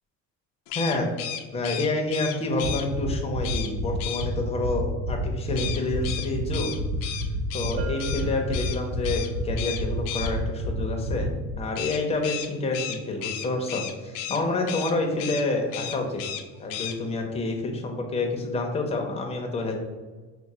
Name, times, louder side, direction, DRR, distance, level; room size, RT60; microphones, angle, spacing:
sound 1, 0.7-2.8 3.4-3.7 4.0-4.3 5.6-8.2 8.5-8.8 9.0-9.3 9.6-10.3 11.8-14.4 14.7-14.9 15.2-15.4 15.7-16.4 16.7-16.9, left 10 dB, 80° left, 0.6 m, -34 dB
voice 1, 0.7-1.1 1.5-6.8 7.5-16.3 16.6-19.7, left 2 dB, 20° left, 2 dB, 0.6 m, -28 dB
sound 2, 2.6-11.5, right 2 dB, 60° right, 1.1 m, -29 dB
Bell, 7.8-9.4, right 6 dB, 45° right, 0.5 m, -40 dB
4.8 x 2.0 x 4.1 m, 1.3 s
cardioid pair, 155°, 33 cm